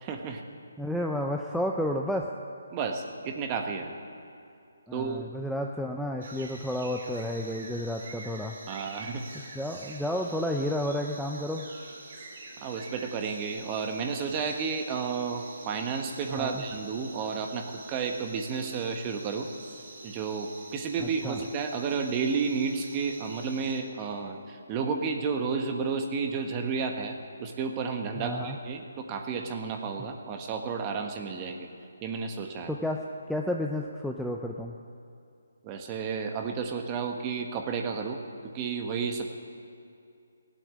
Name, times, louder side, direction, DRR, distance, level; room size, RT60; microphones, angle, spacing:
voice 1, 0.0-0.4 2.7-3.9 4.9-5.2 8.7-9.2 12.6-19.5 20.0-31.7 32.0-32.7 35.6-39.3, right 5 dB, 25° right, 4 dB, 1.3 m, -32 dB
voice 2, 0.8-2.3 4.9-8.6 9.5-11.7 16.3-16.6 21.0-21.4 28.2-28.6 32.7-34.8, left 1 dB, ahead, 0 dB, 0.5 m, -31 dB
sound 1, 6.2-23.8, right 3 dB, 55° right, 2.8 m, -46 dB
17.0 x 8.7 x 8.4 m, 2.5 s
hypercardioid pair, 155°, 0 cm